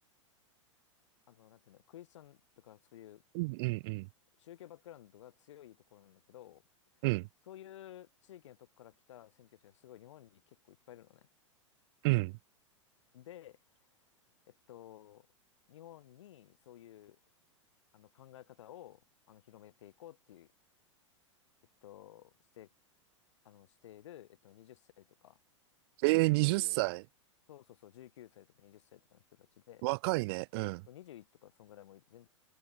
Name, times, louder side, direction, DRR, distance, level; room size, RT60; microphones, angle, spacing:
voice 1, 1.3-3.2 4.4-6.6 7.5-11.3 13.1-13.8 14.5-15.3 15.7-17.2 17.9-19.0 19.3-20.5 21.8-22.7 23.4-25.4 26.4-26.8 27.5-29.9 30.9-32.3, left 12 dB, 65° left, 6.8 m, -54 dB
voice 2, 3.3-4.1 7.0-7.3 12.0-12.4 26.0-27.0 29.8-30.8, right 25 dB, 50° right, 0.8 m, -29 dB
hypercardioid pair, 100°, 16 cm